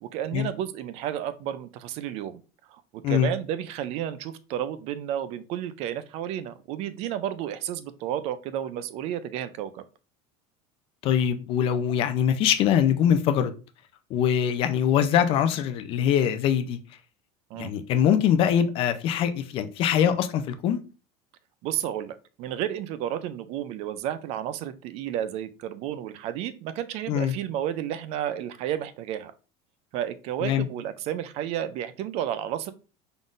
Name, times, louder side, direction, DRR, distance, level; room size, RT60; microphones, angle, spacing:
voice 1, 0.0-2.4 2.7-9.8 17.5-17.7 21.6-29.3 29.9-32.7, right 11 dB, 45° right, 0.4 m, -32 dB
voice 2, 11.0-13.5 14.1-16.8 17.6-20.8 27.1-27.3 30.4-30.6, left 9 dB, 40° left, 0.4 m, -23 dB
3.9 x 3.6 x 2.4 m
cardioid pair, 160°, 15 cm